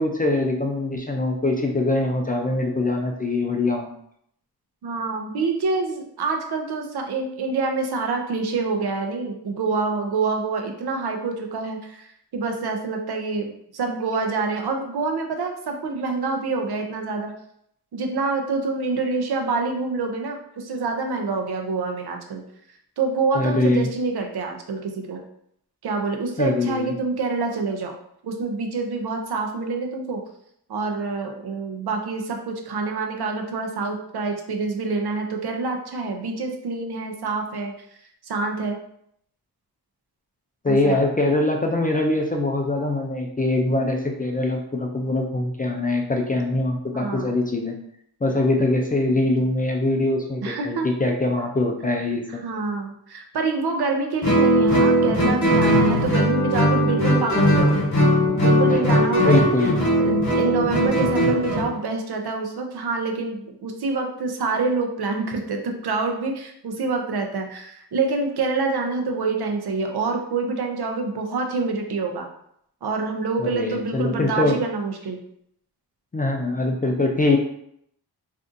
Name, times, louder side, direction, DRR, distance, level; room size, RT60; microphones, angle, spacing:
voice 1, 0.0-3.9 23.3-23.9 26.4-26.9 40.6-47.7 48.2-52.4 58.7-58.8 59.2-59.9 73.4-74.6 76.1-77.4, left 2 dB, 25° left, 1 dB, 0.3 m, -23 dB
voice 2, 4.8-12.1 12.3-17.3 17.9-22.4 23.0-25.2 25.8-27.9 28.2-30.2 30.7-37.7 38.2-38.8 40.7-41.0 46.9-47.3 50.4-50.9 52.3-57.8 58.4-59.4 60.0-72.3 72.8-75.2, right 4 dB, 70° right, 3 dB, 0.6 m, -26 dB
Guitar, 54.2-61.7, equal, 45° left, 1.1 m, -19 dB
3.6 x 2.6 x 2.5 m, 0.71 s
wide cardioid pair, 125°, 40 cm